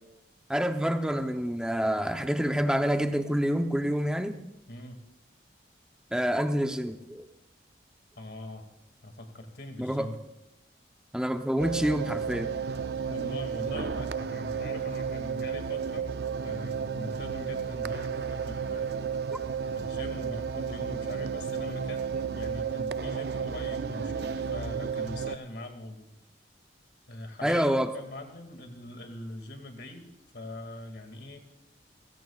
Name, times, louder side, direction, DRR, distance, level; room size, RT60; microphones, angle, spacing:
voice 1, 0.5-4.4 6.1-7.3 9.8-10.1 11.1-12.5 19.3-19.4 27.4-27.9, equal, 5° right, 6 dB, 0.7 m, -27 dB
voice 2, 4.7-5.0 8.2-8.6 9.0-10.2 13.1-16.2 16.4-19.0 19.7-26.1 27.1-31.4, left 1 dB, 65° left, 5 dB, 2.3 m, -42 dB
sound 1, 11.6-25.4, right 6 dB, 60° right, 0.5 m, -33 dB
29.5 x 17.0 x 2.4 m, 0.91 s
head